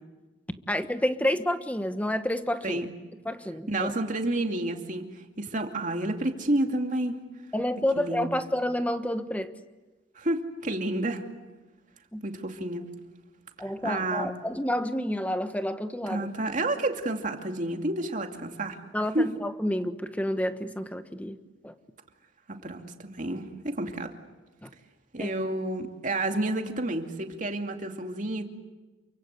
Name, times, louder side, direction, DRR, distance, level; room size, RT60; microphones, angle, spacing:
voice 1, 0.7-2.8 3.2-3.9 7.5-9.5 12.1-12.2 13.6-16.3 18.9-21.4 21.6-21.7 24.6-24.7 25.2-25.3, left 1 dB, 10° left, 1.2 m, -29 dB
voice 2, 3.7-7.2 8.0-8.4 10.2-11.3 12.2-12.8 13.8-14.3 16.1-18.8 19.1-19.3 22.5-24.1 25.1-28.4, right 1 dB, 40° right, 2.5 m, -30 dB
29.0 x 24.0 x 8.3 m
head